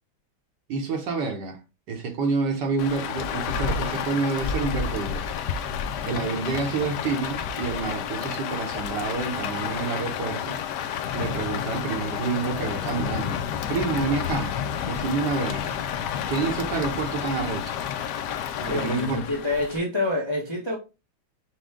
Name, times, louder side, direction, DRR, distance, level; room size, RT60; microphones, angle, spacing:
voice 1, 0.7-1.6 1.9-5.3 6.0-10.6 11.1-14.6 14.8-15.7 16.3-17.8 18.7-19.3, right 4 dB, 65° right, 1.4 m, -28 dB
Rain, 2.8-19.8, left 8 dB, 75° left, 1.0 m, -30 dB
voice 2, 18.6-20.7, left 2 dB, 25° left, 0.6 m, -27 dB
6.1 x 2.2 x 3.5 m
omnidirectional pair, 2.2 m